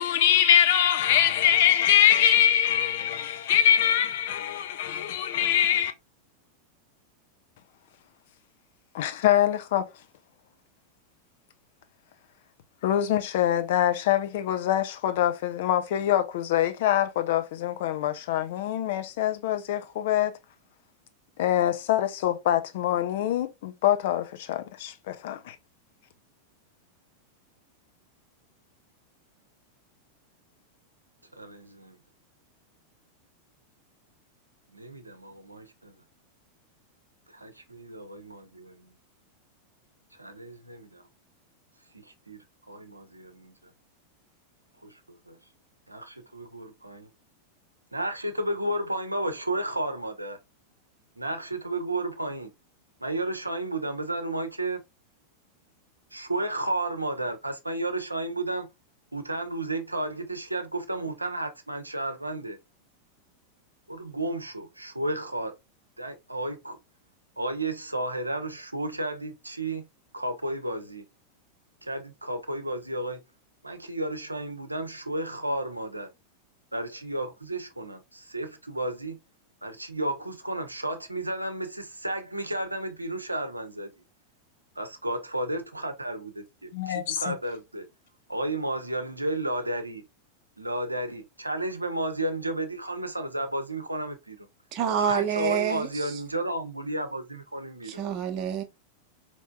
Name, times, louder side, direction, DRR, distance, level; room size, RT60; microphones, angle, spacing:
voice 1, 0.0-5.9 8.9-9.9 12.8-20.4 21.4-25.6 86.7-87.3, left 10 dB, 55° left, 0.5 m, -24 dB
voice 2, 31.4-32.0 34.7-35.9 37.8-38.9 40.2-41.0 41.9-42.4 42.7-43.5 44.8-45.4 45.9-47.1 47.9-50.4 51.2-52.5 53.0-54.8 56.1-58.7 59.1-62.6 63.9-65.5 66.0-66.8 67.4-69.8 70.1-71.0 71.8-73.2 73.6-76.1 76.7-79.2 79.6-83.9 84.8-87.8 88.3-90.0 90.6-94.5 95.1-98.0, right 1 dB, 85° right, 0.6 m, -32 dB
voice 3, 94.7-96.1 97.9-98.6, right 8 dB, 40° right, 0.8 m, -27 dB
4.4 x 3.0 x 2.2 m
figure-of-eight pair, 90°, 0 cm